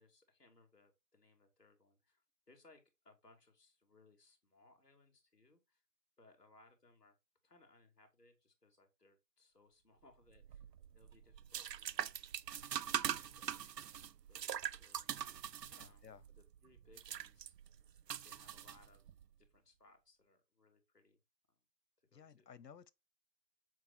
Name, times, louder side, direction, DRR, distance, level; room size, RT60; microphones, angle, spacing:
voice 1, 0.0-5.8 6.2-7.2 7.4-12.2 12.8-15.5 15.7-19.0 19.4-21.2 22.0-22.5, left 2 dB, 5° left, 1.7 m, -68 dB
sound 1, 10.4-19.2, right 9 dB, 80° right, 0.6 m, -43 dB
voice 2, 15.7-16.2 22.1-22.9, left 7 dB, 85° left, 0.8 m, -57 dB
7.9 x 4.7 x 4.4 m
hypercardioid pair, 180°, 49 cm